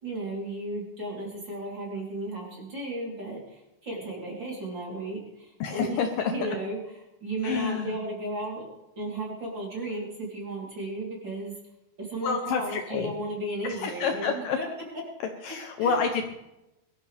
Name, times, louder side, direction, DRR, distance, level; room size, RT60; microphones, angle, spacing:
voice 1, 0.0-8.7 9.0-11.5 12.0-14.6 15.4-15.5 15.8-16.0, right 2 dB, 30° right, -4 dB, 3.9 m, -34 dB
voice 2, 5.6-6.3 7.4-8.0 12.2-13.1 13.6-14.6 15.4-16.2, left 6 dB, 70° left, 5 dB, 2.3 m, -28 dB
22.0 x 13.5 x 3.5 m, 0.93 s
omnidirectional pair, 4.5 m